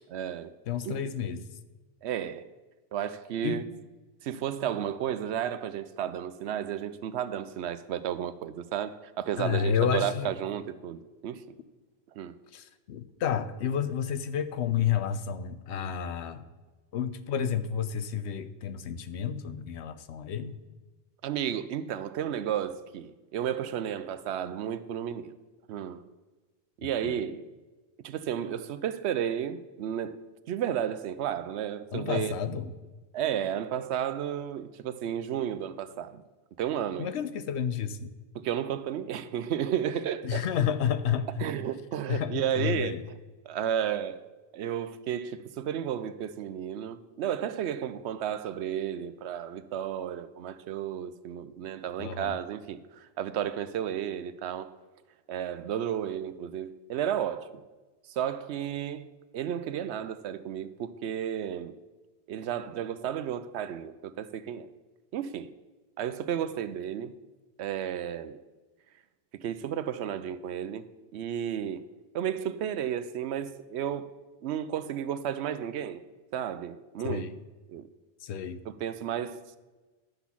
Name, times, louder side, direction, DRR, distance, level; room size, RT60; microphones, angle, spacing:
voice 1, 0.0-0.5 0.8-1.0 2.0-2.5 2.9-3.6 4.2-11.5 12.2-12.3 21.2-25.3 25.7-26.0 26.8-27.4 28.0-30.2 30.5-32.3 33.1-36.2 36.6-37.1 38.3-40.5 41.4-43.0 43.5-44.3 44.5-54.7 55.3-57.6 58.1-59.1 59.3-61.7 62.3-64.7 65.1-65.5 66.0-67.1 67.6-68.4 69.3-70.9 71.1-71.9 72.1-74.1 74.4-76.0 76.3-77.2 77.7-77.9 78.6-79.6, right 9 dB, 75° right, 0.8 m, -33 dB
voice 2, 0.7-1.4 3.4-3.6 9.4-10.3 12.5-16.4 16.9-20.6 27.0-27.2 31.9-32.7 37.0-38.1 40.2-41.5 42.1-43.0 52.0-52.4 77.0-77.3 78.2-78.6, left 8 dB, 80° left, 0.9 m, -30 dB
12.0 x 4.0 x 7.1 m
omnidirectional pair, 1.1 m